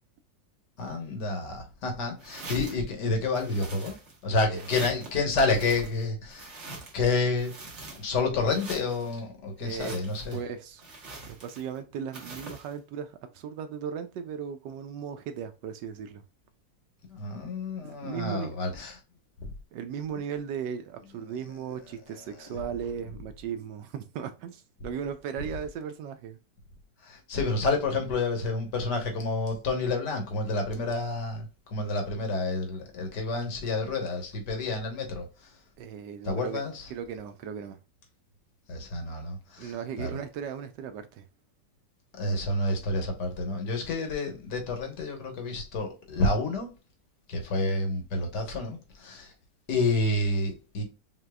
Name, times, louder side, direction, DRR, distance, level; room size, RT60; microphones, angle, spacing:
voice 1, 0.8-4.0 4.2-6.5 6.9-7.6 8.0-10.4 17.1-19.0 19.4-19.5 22.4-22.5 27.0-35.5 36.2-36.9 38.7-40.2 42.2-46.7 47.3-49.3 49.7-50.8, left 3 dB, 65° left, 1.8 m, -29 dB
sound 1, 2.2-2.9 3.3-4.2 4.5-5.2 5.5-7.1 7.4-8.2 8.5-9.1 9.6-10.4 10.8-11.8 12.1-12.7, right 3 dB, 40° right, 1.5 m, -44 dB
voice 2, 9.6-10.0 10.3-10.8 11.3-16.2 17.8-18.8 19.7-26.4 35.8-36.6 36.9-37.8 39.6-41.2, right 8 dB, 75° right, 1.2 m, -37 dB
5.8 x 2.9 x 2.2 m
omnidirectional pair, 2.0 m